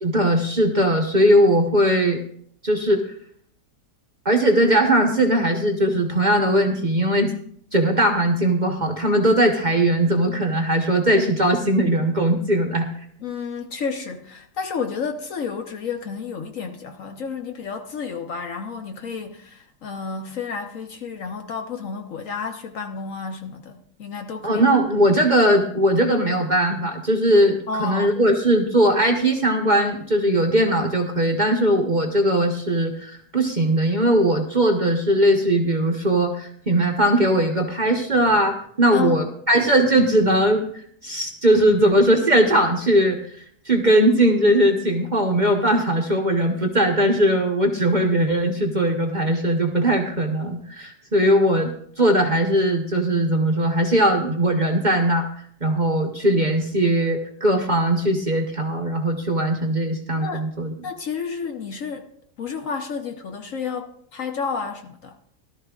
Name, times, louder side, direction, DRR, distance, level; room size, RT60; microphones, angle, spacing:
voice 1, 0.0-2.2 2.6-3.0 4.2-7.3 7.7-12.9 24.4-40.7 41.0-43.2 43.6-51.7 52.0-55.3 55.6-60.7, right 1 dB, 35° right, 1.0 m, -19 dB
voice 2, 13.2-24.6 27.7-28.1 38.9-39.2 60.2-60.5 60.8-62.1 62.4-65.2, left 5 dB, 60° left, 1.1 m, -31 dB
17.0 x 12.5 x 2.4 m
omnidirectional pair, 1.8 m